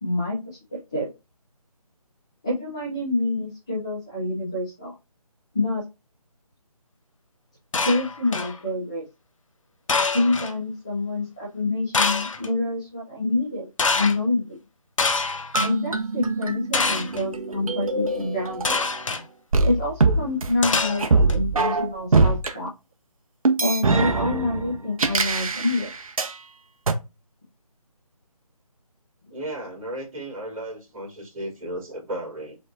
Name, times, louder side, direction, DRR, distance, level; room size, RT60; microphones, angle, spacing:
voice 1, 0.0-1.1 2.4-4.9 5.5-5.8 7.8-9.0 10.1-13.7 13.9-14.6 15.6-18.8 19.6-22.7 23.6-25.9, left 2 dB, 10° left, 0.4 m, -27 dB
sound 1, 7.7-8.6 9.9-10.5 11.9-12.5 13.8-14.2 15.0-15.7 16.7-17.2 18.6-19.2 20.6-21.3, left 4 dB, 55° left, 0.7 m, -25 dB
sound 2, 15.5-19.1 19.5-22.5 23.5-26.3 26.9-27.0, right 3 dB, 65° right, 0.8 m, -23 dB
voice 2, 29.3-32.6, right 1 dB, 10° right, 2.6 m, -34 dB
5.2 x 3.4 x 2.6 m
figure-of-eight pair, 165°, 19 cm